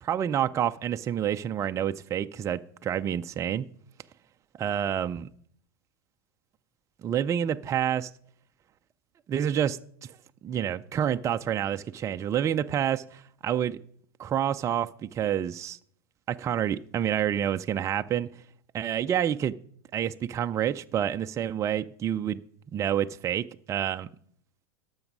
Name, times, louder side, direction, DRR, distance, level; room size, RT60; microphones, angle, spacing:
voice 1, 0.0-3.7 4.6-5.3 7.0-8.1 9.3-9.8 10.4-13.8 14.2-15.8 16.3-18.3 18.7-19.6 19.9-22.4 22.7-24.1, right 9 dB, 25° right, 0.5 m, -28 dB
12.0 x 7.1 x 5.4 m
hypercardioid pair, 115°, 12 cm